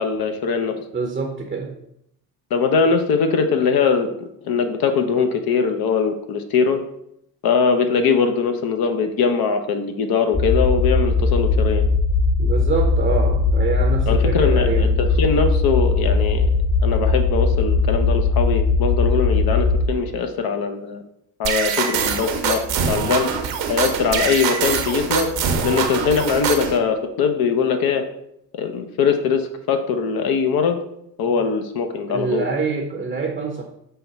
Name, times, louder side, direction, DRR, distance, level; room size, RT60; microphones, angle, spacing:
voice 1, 0.0-0.8 2.5-4.1 4.4-6.8 7.4-11.8 14.1-16.5 16.8-21.0 21.4-23.3 23.7-25.3 25.6-28.0 28.5-30.8 31.2-32.5, left 5 dB, 45° left, 6 dB, 0.7 m, -21 dB
voice 2, 0.9-1.7 12.4-14.9 32.1-33.6, right 5 dB, 15° right, 2 dB, 0.7 m, -25 dB
sound 1, 10.3-19.8, left 3 dB, 15° left, 1.0 m, -19 dB
sound 2, 21.4-26.8, right 6 dB, 65° right, 0.9 m, -23 dB
5.6 x 2.3 x 4.1 m, 0.76 s
hypercardioid pair, 65°, 49 cm